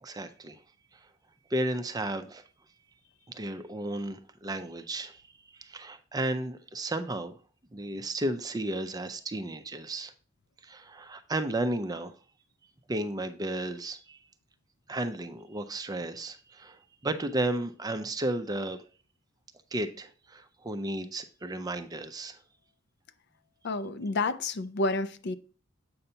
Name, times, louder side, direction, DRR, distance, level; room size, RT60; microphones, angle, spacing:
voice 1, 0.0-0.6 1.5-2.4 3.3-5.2 5.5-7.4 7.7-10.1 10.6-12.1 12.9-14.2 14.9-18.8 19.7-22.4, right 1 dB, 20° right, 0.5 m, -33 dB
voice 2, 23.6-25.4, left 2 dB, 55° left, 0.5 m, -30 dB
7.8 x 5.5 x 2.7 m
head